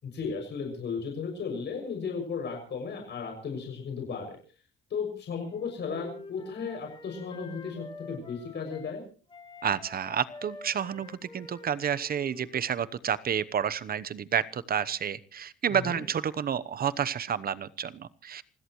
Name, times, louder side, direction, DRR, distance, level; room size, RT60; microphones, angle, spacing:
voice 1, 0.0-4.4 4.9-9.0 15.7-16.0, left 5 dB, 60° left, 2 dB, 6.7 m, -35 dB
Wind instrument woodwind instrument, 5.4-8.9 9.3-13.0, left 3 dB, 25° left, 4.2 m, -48 dB
voice 2, 9.6-18.4, right 8 dB, 50° right, 17 dB, 1.0 m, -30 dB
28.0 x 16.5 x 3.1 m, 0.40 s
cardioid pair, 90°, 20 cm